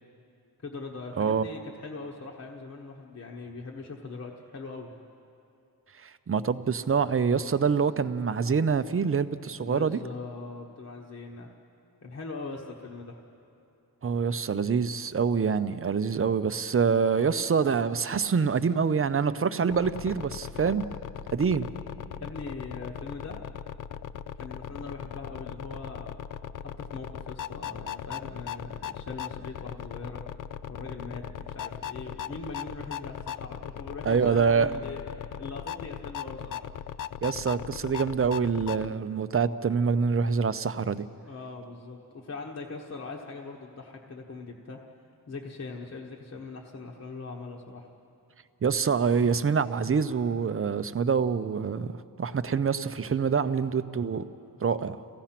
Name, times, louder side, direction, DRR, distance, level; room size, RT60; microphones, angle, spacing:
voice 1, 0.6-4.9 9.6-11.5 12.0-13.2 22.2-23.3 24.3-26.2 26.6-30.2 30.7-36.7 41.2-44.8 45.3-47.9, left 3 dB, 40° left, -1 dB, 1.2 m, -41 dB
voice 2, 1.2-1.5 6.0-10.0 14.0-20.8 21.3-21.7 34.0-34.7 37.2-41.1 48.6-51.9 52.2-54.2 54.6-55.0, right 6 dB, 35° right, 12 dB, 0.6 m, -26 dB
sound 1, 19.7-38.9, left 9 dB, 60° left, 0.4 m, -39 dB
29.5 x 16.0 x 5.9 m, 2.8 s
wide cardioid pair, 155°, 37 cm